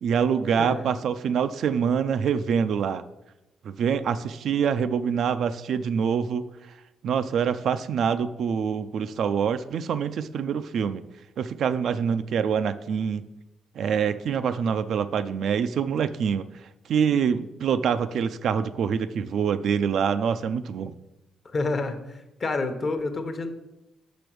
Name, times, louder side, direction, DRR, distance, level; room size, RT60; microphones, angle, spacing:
voice 1, 0.0-3.0 3.6-6.4 7.0-11.0 11.4-13.2 13.8-16.5 16.9-20.9, right 7 dB, 65° right, 11 dB, 0.4 m, -25 dB
voice 2, 0.6-0.9 21.4-23.5, left 3 dB, 40° left, 7 dB, 0.9 m, -29 dB
6.0 x 5.1 x 6.1 m, 0.95 s
cardioid pair, 90°, 0 cm